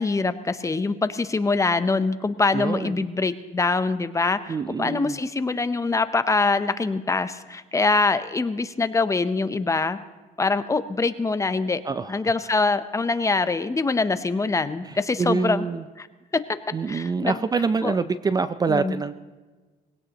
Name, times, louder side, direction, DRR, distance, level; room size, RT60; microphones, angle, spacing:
voice 1, 0.0-10.0 10.4-11.8 12.1-15.7 16.0-16.1 16.3-16.4 16.9-17.3 17.8-17.9 18.7-19.0, left 3 dB, 20° left, 12 dB, 0.7 m, -24 dB
voice 2, 2.5-3.1 4.5-5.2 11.8-12.2 14.8-15.8 16.7-19.2, right 4 dB, 25° right, 13 dB, 0.4 m, -26 dB
21.5 x 17.0 x 3.0 m, 1.3 s
cardioid pair, 110°, 17 cm